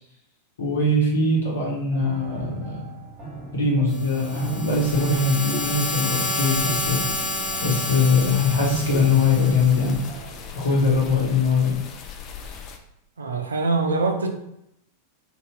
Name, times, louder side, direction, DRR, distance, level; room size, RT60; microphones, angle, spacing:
voice 1, 0.6-2.8 3.2-7.0 7.6-10.0 10.5-11.7, left 3 dB, 70° left, -3 dB, 1.0 m, -21 dB
sound 1, 1.9-11.4, right 2 dB, 20° right, 1.3 m, -39 dB
sound 2, 3.9-10.1, left 1 dB, 20° left, 0.7 m, -30 dB
sound 3, 4.7-12.8, left 6 dB, 35° left, 0.4 m, -40 dB
voice 2, 13.2-14.3, right 3 dB, 70° right, 4 dB, 0.4 m, -23 dB
2.7 x 2.3 x 3.3 m, 0.80 s
figure-of-eight pair, 90°, 0 cm